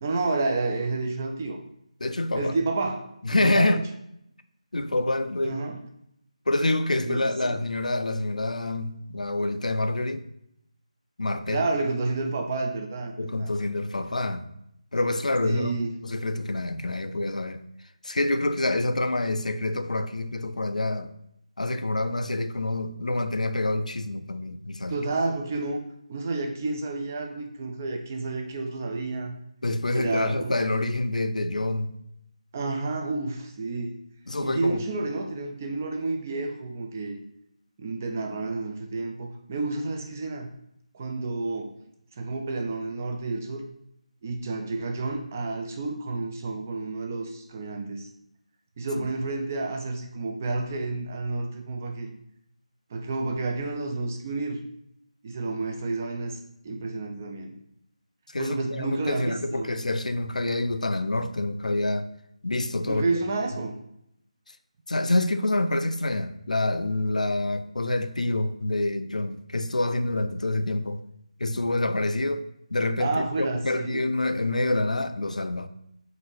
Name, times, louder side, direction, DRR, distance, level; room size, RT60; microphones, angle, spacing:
voice 1, 0.0-1.6 2.3-3.8 5.4-5.8 7.1-7.6 11.5-13.5 15.4-15.9 24.9-25.8 26.1-29.4 29.9-30.6 32.5-34.0 34.4-37.2 37.8-40.5 40.9-41.7 42.2-43.7 44.2-48.1 48.8-52.1 52.9-54.6 55.2-56.4 56.6-57.6 58.4-59.7 62.9-63.8 73.0-74.1, right 3 dB, 20° right, 0.3 m, -30 dB
voice 2, 2.0-2.5 3.2-3.8 4.7-5.6 6.5-10.2 11.2-11.6 13.2-14.5 14.9-15.7 16.0-17.6 18.0-21.1 21.6-24.9 29.6-31.9 34.3-34.8 49.0-49.1 53.2-53.3 56.7-56.8 58.3-62.1 62.4-63.1 64.9-71.0 71.4-75.7, left 2 dB, 90° left, 0.4 m, -27 dB
4.0 x 2.6 x 4.4 m
figure-of-eight pair, 165°, 4 cm